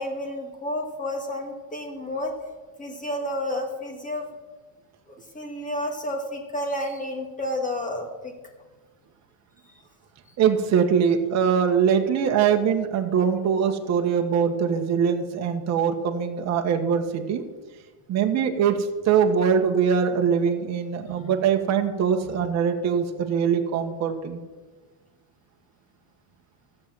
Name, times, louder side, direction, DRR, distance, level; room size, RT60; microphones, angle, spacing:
voice 1, 0.0-2.3 2.8-4.3 5.1-8.3 21.0-21.3, left 1 dB, 15° left, 4 dB, 1.8 m, -31 dB
voice 2, 10.4-17.4 18.1-24.4, right 7 dB, 35° right, 4 dB, 1.3 m, -22 dB
14.0 x 7.7 x 7.6 m, 1.3 s
cardioid pair, 160°, 49 cm